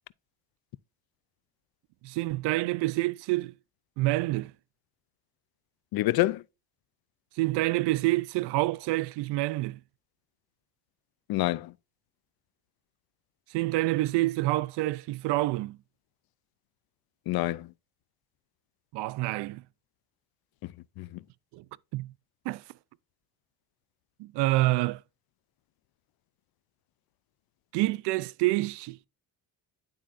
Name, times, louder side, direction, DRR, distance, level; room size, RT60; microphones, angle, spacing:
voice 1, 2.0-3.5 4.0-4.5 7.4-9.8 13.5-15.8 18.9-19.6 21.5-21.6 21.9-22.1 22.5-22.6 24.2-25.0 27.7-29.0, right 19 dB, 85° right, 0.5 m, -27 dB
voice 2, 5.9-6.4 11.3-11.7 17.3-17.7 20.6-21.2, left 17 dB, 65° left, 0.5 m, -28 dB
10.5 x 3.7 x 2.5 m
cardioid pair, 90°, 40 cm